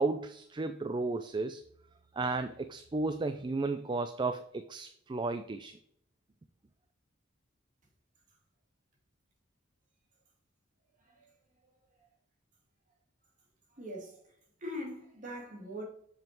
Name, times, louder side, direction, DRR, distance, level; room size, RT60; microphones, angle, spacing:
voice 1, 0.0-1.6 2.1-5.8, right 3 dB, 25° right, 0.4 m, -33 dB
voice 2, 13.8-14.2 14.6-15.8, equal, 40° right, 2.6 m, -41 dB
7.3 x 5.9 x 4.5 m
head